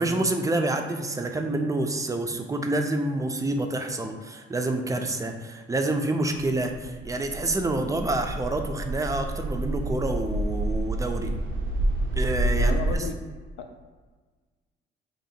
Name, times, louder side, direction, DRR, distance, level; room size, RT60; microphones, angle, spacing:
voice 1, 0.0-11.3 12.2-13.1, right 2 dB, 15° right, 5 dB, 0.4 m, -28 dB
sound 1, 6.7-13.0, right 1 dB, 80° right, 0.5 m, -28 dB
voice 2, 12.6-13.1 13.6-13.8, left 6 dB, 85° left, 6 dB, 0.5 m, -33 dB
3.0 x 2.8 x 4.2 m, 1.4 s
cardioid pair, 90°, 20 cm